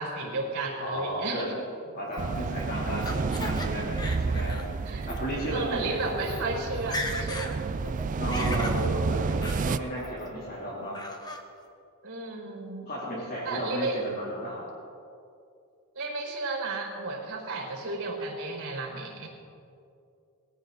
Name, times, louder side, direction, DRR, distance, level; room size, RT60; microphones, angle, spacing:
voice 1, 0.0-1.6 4.8-5.1 5.5-7.8 12.0-12.9 13.4-14.0 15.9-19.3, right 3 dB, 60° right, 0 dB, 4.7 m, -33 dB
voice 2, 0.8-1.4 1.9-4.6 5.0-6.0 8.1-11.0 12.9-14.6, equal, 45° left, -6 dB, 3.4 m, -34 dB
Laughter, 2.1-3.7 4.0-4.6 5.0-5.2 5.9-6.0 6.2-6.4 6.7-7.5 7.9-8.8 9.4-9.6 10.0-10.5 10.9-11.4, left 1 dB, 20° left, 1.2 m, -37 dB
sound 1, 2.2-9.8, right 4 dB, 35° right, 0.4 m, -30 dB
20.0 x 14.5 x 4.1 m, 2.5 s
head